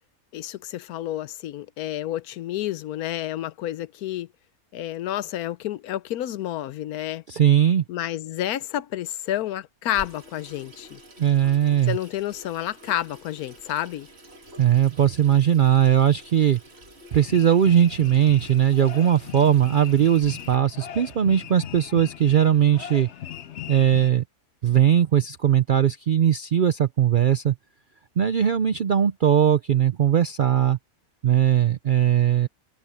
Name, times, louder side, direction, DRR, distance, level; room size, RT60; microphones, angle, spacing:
voice 1, 0.3-4.3 4.7-7.2 7.9-11.0 11.9-14.1, left 13 dB, 85° left, 1.2 m, -30 dB
voice 2, 7.3-7.8 11.2-12.0 14.6-16.6 17.1-23.1 23.7-24.2 24.6-27.6 28.2-30.8 31.2-32.5, right 10 dB, 65° right, 0.5 m, -19 dB
Water tap faucet / Sink (filling or washing), 9.9-20.6, right 1 dB, 45° right, 2.9 m, -48 dB
sound 1, 17.1-24.1, left 10 dB, 55° left, 0.9 m, -39 dB
omnidirectional pair, 1.5 m